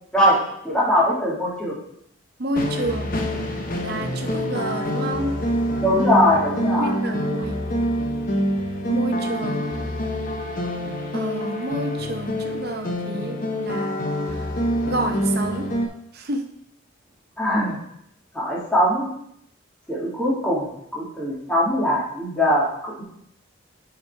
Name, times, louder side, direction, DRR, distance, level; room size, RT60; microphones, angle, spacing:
voice 1, 0.6-1.8 5.8-6.9 17.4-17.8 18.3-19.1 19.9-23.0, equal, 5° left, -7 dB, 2.0 m, -21 dB
voice 2, 2.4-3.2 3.8-5.3 6.8-7.6 8.9-9.7 11.1-14.0 14.3-14.5 14.9-15.7 16.1-16.4, right 1 dB, 50° right, 5 dB, 0.7 m, -29 dB
sound 1, 2.5-15.9, equal, 45° left, 0.8 m, -26 dB
5.5 x 5.0 x 4.6 m, 0.73 s
head